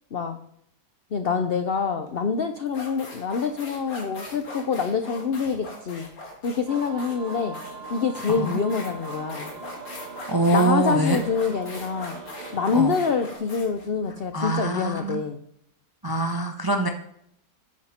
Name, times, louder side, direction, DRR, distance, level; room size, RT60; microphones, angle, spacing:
voice 1, 1.1-6.1 6.4-7.6 7.9-9.5 10.5-12.2 12.5-15.4, left 5 dB, 85° left, 8 dB, 0.5 m, -26 dB
sound 1, 2.1-2.2 2.7-15.0, left 2 dB, 60° left, 2.2 m, -41 dB
sound 2, 6.7-13.4, right 5 dB, 45° right, 0.9 m, -41 dB
voice 2, 10.3-11.2 12.7-13.0 14.3-15.2 16.0-16.9, right 2 dB, 30° right, 5 dB, 0.4 m, -24 dB
9.6 x 7.3 x 4.2 m, 0.71 s
omnidirectional pair, 1.8 m